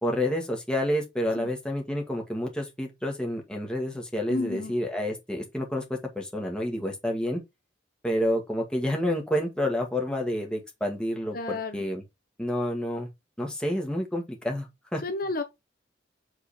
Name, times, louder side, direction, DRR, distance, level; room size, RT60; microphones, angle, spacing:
voice 1, 0.0-7.4 8.0-12.0 12.4-13.1 13.4-15.0, left 1 dB, 5° left, 1.8 m, -29 dB
voice 2, 4.3-4.7 11.3-11.8 15.0-15.4, left 3 dB, 50° left, 0.9 m, -31 dB
8.0 x 4.1 x 4.2 m
head